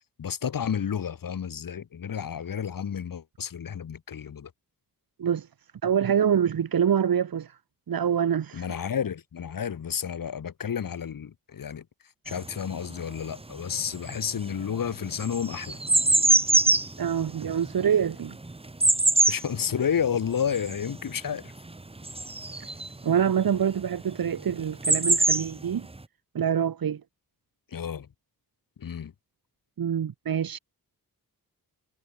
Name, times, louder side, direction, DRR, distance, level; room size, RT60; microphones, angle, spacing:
voice 1, 0.2-4.5 8.5-11.8 12.2-15.8 19.3-21.5 27.7-28.1 28.8-29.1, left 8 dB, 70° left, 4.7 m, -31 dB
voice 2, 5.8-7.5 7.9-8.6 17.0-18.4 23.0-25.9 26.3-27.0 29.8-30.6, right 8 dB, 85° right, 4.9 m, -25 dB
sound 1, 12.3-13.4 13.7-23.0 24.1-24.2 24.4-26.0, right 2 dB, 15° right, 5.7 m, -24 dB
wide cardioid pair, 175°, 34 cm